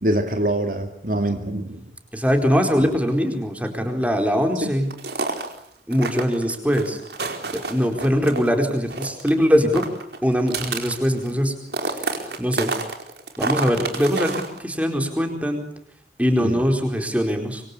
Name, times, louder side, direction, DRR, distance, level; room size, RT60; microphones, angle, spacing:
voice 1, 0.0-1.8 4.6-4.7 16.4-16.6, right 1 dB, 50° right, 6 dB, 2.4 m, -24 dB
voice 2, 2.1-4.9 5.9-7.0 7.5-9.8 10.2-11.5 11.8-12.7 13.4-15.6 16.2-17.6, equal, 10° right, 5 dB, 4.4 m, -22 dB
sound 1, 4.9-5.6 5.9-8.5 8.7-9.4 9.6-11.4 11.7-14.6, right 3 dB, 65° right, 4.5 m, -29 dB
26.5 x 24.5 x 8.6 m, 0.67 s
head